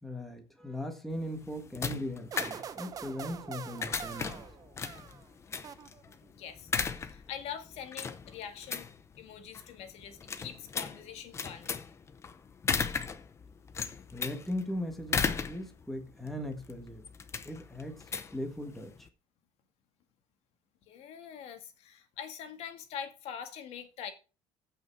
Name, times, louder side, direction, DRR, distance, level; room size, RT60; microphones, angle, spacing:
voice 1, 0.0-4.4 14.1-17.1 17.4-18.0 18.3-19.1, left 1 dB, ahead, 1.6 m, -38 dB
sound 1, 1.1-19.1, left 5 dB, 25° left, 0.8 m, -37 dB
sound 2, 2.3-5.3 5.6-6.3, right 8 dB, 30° right, 0.7 m, -44 dB
voice 2, 6.3-6.7 7.0-8.9 9.2-11.7 20.9-24.1, left 8 dB, 70° left, 1.8 m, -43 dB
15.0 x 5.7 x 4.7 m
cardioid pair, 165°, 11 cm